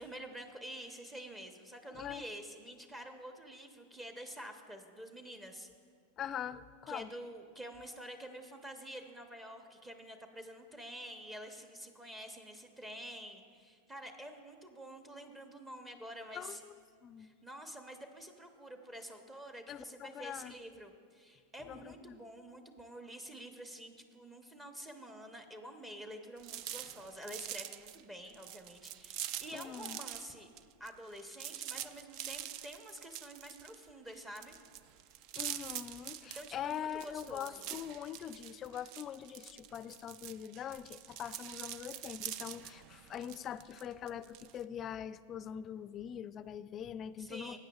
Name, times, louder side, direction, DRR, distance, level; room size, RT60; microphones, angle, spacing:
voice 1, 0.0-5.7 6.9-16.6 17.2-30.5 30.8-34.5 36.3-37.6 47.2-47.6, equal, 20° right, 5 dB, 0.9 m, -48 dB
voice 2, 1.9-2.2 6.2-7.1 16.3-16.7 17.0-17.3 19.7-20.5 21.7-22.2 29.5-30.0 35.3-47.6, left 9 dB, 35° left, 15 dB, 0.4 m, -43 dB
sound 1, 26.4-30.3 30.6-44.6, right 12 dB, 55° right, 0.4 m, -45 dB
18.5 x 9.0 x 2.4 m, 2.1 s
hypercardioid pair, 100°, 0 cm